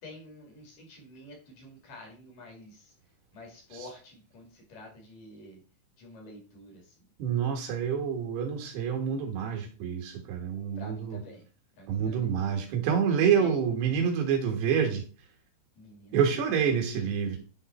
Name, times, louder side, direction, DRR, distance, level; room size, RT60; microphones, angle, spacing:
voice 1, 0.0-2.9 3.3-5.6 6.0-6.9 10.8-11.5 11.8-12.3 13.4-13.6 15.8-16.2 16.7-17.0, left 1 dB, 55° left, 1 dB, 3.3 m, -48 dB
voice 2, 7.2-11.2 11.9-15.0 16.1-17.4, right 7 dB, 70° right, 2 dB, 3.5 m, -27 dB
10.0 x 3.7 x 4.2 m, 0.37 s
omnidirectional pair, 5.1 m